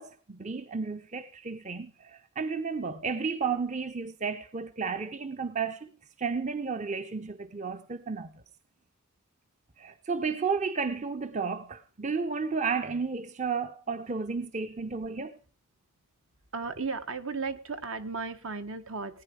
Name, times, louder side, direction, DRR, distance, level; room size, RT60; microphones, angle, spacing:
voice 1, 0.0-5.9 6.2-8.3 9.8-15.3, right 5 dB, 30° right, 0.6 m, -32 dB
voice 2, 16.5-19.2, right 4 dB, 70° right, 1.4 m, -35 dB
18.5 x 9.7 x 4.7 m
head